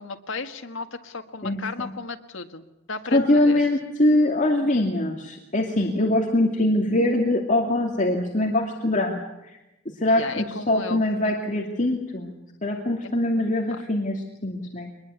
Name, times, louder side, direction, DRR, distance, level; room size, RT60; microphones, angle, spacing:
voice 1, 0.0-3.6 10.1-11.0 13.7-13.8, left 4 dB, 75° left, 6 dB, 1.8 m, -35 dB
voice 2, 1.4-1.9 3.1-9.6 10.0-12.3 12.6-14.9, left 1 dB, 40° left, 1 dB, 2.5 m, -23 dB
24.0 x 21.0 x 8.3 m, 0.94 s
head